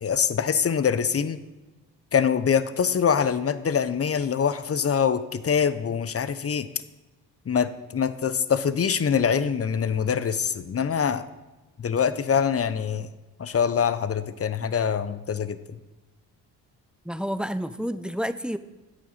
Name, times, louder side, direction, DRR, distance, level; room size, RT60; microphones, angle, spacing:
voice 1, 0.0-1.4 2.1-6.7 7.5-11.2 11.8-13.1 13.4-15.8, left 7 dB, 35° left, 13 dB, 0.9 m, -24 dB
voice 2, 17.0-18.6, equal, ahead, 12 dB, 0.7 m, -29 dB
15.5 x 8.4 x 4.2 m, 1.1 s
hypercardioid pair, 55°, 43 cm